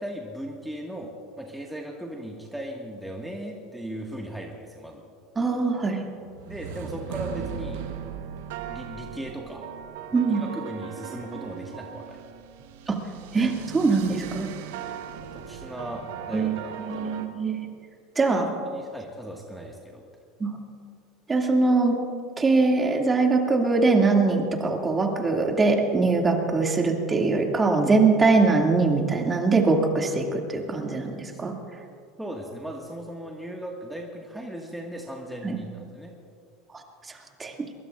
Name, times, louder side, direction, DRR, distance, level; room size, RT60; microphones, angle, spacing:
voice 1, 0.0-5.0 6.5-7.9 8.7-9.6 10.3-12.2 15.3-17.1 18.3-20.0 31.3-31.4 32.2-36.2, right 1 dB, 5° right, -1 dB, 1.9 m, -37 dB
voice 2, 5.4-6.0 10.1-10.4 12.9-13.0 13.3-14.5 16.3-16.5 16.8-17.7 18.2-18.5 20.4-20.6 21.3-22.1 22.4-31.5 35.4-35.6 36.7-36.8 37.4-37.5, right 3 dB, 25° right, 1 dB, 2.5 m, -22 dB
sound 1, 6.2-17.3, right 8 dB, 75° right, 1.2 m, -38 dB
23.5 x 22.0 x 2.6 m, 2.4 s
hypercardioid pair, 85°, 0 cm